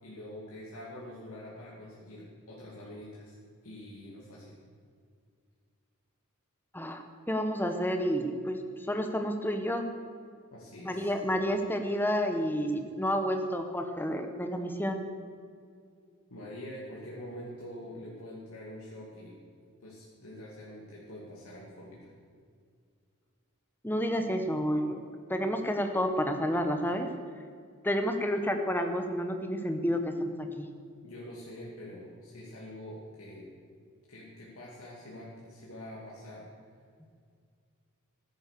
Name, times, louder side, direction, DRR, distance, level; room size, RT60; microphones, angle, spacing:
voice 1, 0.0-3.4 3.6-4.5 10.5-11.1 16.3-19.4 19.8-22.1 31.0-33.5 34.1-36.5, left 1 dB, 90° left, -6 dB, 2.6 m, -45 dB
voice 2, 6.7-8.6 8.9-9.9 10.8-15.0 23.8-25.0 25.3-27.1 27.8-30.7, equal, 10° left, 6 dB, 1.1 m, -30 dB
14.0 x 11.0 x 6.7 m, 2.1 s
head